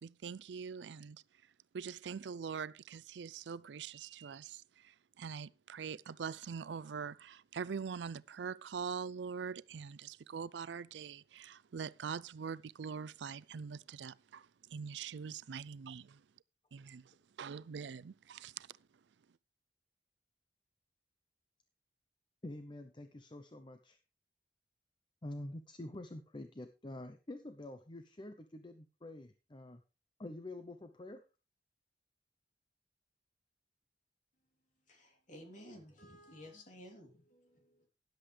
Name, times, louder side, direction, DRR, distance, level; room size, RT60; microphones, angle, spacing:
voice 1, 0.0-1.2 1.7-16.2 16.7-18.8, right 6 dB, 80° right, 0.4 m, -43 dB
voice 2, 22.4-24.0 25.2-29.8 30.2-31.2, left 1 dB, 25° left, 0.8 m, -47 dB
voice 3, 34.9-37.9, equal, 45° left, 3.2 m, -54 dB
13.0 x 10.5 x 3.3 m
head